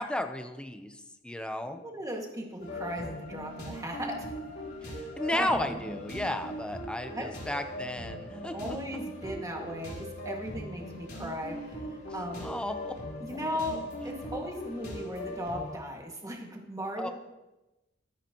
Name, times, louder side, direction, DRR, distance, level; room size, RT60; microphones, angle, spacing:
voice 1, 0.0-1.8 5.2-8.6 12.1-12.9 17.0-17.1, left 1 dB, 5° left, 7 dB, 0.8 m, -33 dB
voice 2, 1.7-4.3 4.8-5.6 7.1-7.3 8.5-11.6 12.1-12.5 13.3-17.1, equal, 20° right, 0 dB, 2.0 m, -37 dB
sound 1, 2.6-15.8, equal, 60° left, 3.6 m, -40 dB
22.5 x 9.8 x 3.1 m, 1.0 s
head